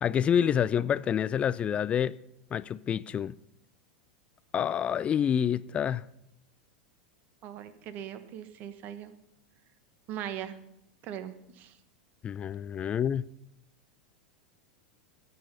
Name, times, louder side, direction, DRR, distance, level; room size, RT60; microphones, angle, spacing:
voice 1, 0.0-2.1 2.5-3.3 4.5-6.0 12.2-13.2, left 8 dB, 25° left, 0.4 m, -27 dB
voice 2, 7.4-9.1 10.1-10.6 11.0-11.8, right 10 dB, 40° right, 1.3 m, -40 dB
14.5 x 8.1 x 5.6 m
figure-of-eight pair, 85°, 4 cm